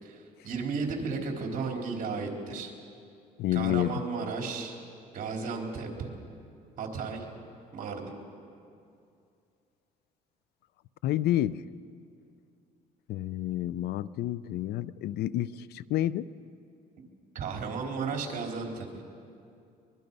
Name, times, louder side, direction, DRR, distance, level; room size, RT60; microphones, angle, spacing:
voice 1, 0.0-2.7 3.5-4.8 5.1-6.1 6.8-7.3 7.7-8.1 17.3-19.0, right 4 dB, 50° right, 1 dB, 3.6 m, -34 dB
voice 2, 3.4-4.0 11.0-11.6 13.1-16.3, left 13 dB, 70° left, 18 dB, 0.5 m, -29 dB
23.5 x 21.5 x 5.4 m, 2.5 s
cardioid pair, 110°, 17 cm